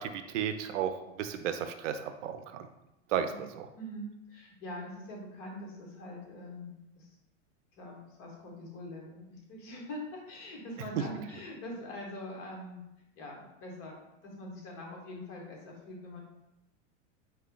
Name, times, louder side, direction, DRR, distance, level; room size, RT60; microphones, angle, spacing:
voice 1, 0.0-2.7 3.1-3.7 11.0-11.1, right 9 dB, 80° right, 8 dB, 0.5 m, -34 dB
voice 2, 3.8-7.2 7.7-12.8 13.2-14.0 14.2-16.2, left 1 dB, 40° left, -1 dB, 1.1 m, -43 dB
4.2 x 2.2 x 3.7 m, 0.91 s
supercardioid pair, 140°, 36 cm